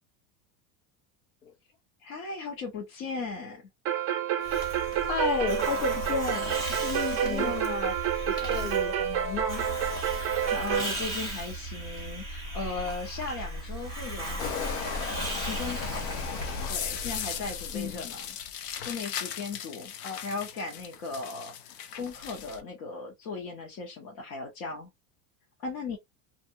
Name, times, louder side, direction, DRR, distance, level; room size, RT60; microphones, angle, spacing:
voice 1, 2.0-3.7 7.1-7.6 10.2-16.0 16.7-18.3 18.8-19.9 20.2-24.9 25.6-26.0, left 4 dB, 50° left, 1.0 m, -37 dB
sound 1, 3.9-10.9, right 9 dB, 35° right, 0.7 m, -29 dB
Hiss, 4.4-17.9, right 1 dB, 10° left, 0.5 m, -36 dB
voice 2, 5.0-9.6 17.7-18.0 20.0-20.2, left 6 dB, 70° left, 1.1 m, -33 dB
sound 2, 14.4-22.6, left 8 dB, 90° left, 0.7 m, -37 dB
2.6 x 2.3 x 2.7 m
supercardioid pair, 165°, 47 cm